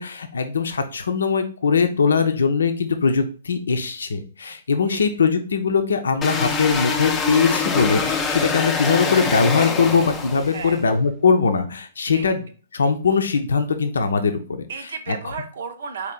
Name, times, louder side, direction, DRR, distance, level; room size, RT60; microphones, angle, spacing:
voice 1, 0.0-12.4 12.7-14.7, left 5 dB, 70° left, 7 dB, 0.6 m, -21 dB
sound 1, 6.2-10.8, left 4 dB, 15° left, 0.6 m, -24 dB
voice 2, 10.5-10.8 12.1-12.3 14.7-16.1, right 5 dB, 60° right, 8 dB, 0.7 m, -33 dB
4.5 x 2.9 x 3.9 m, 0.39 s
figure-of-eight pair, 120°, 0 cm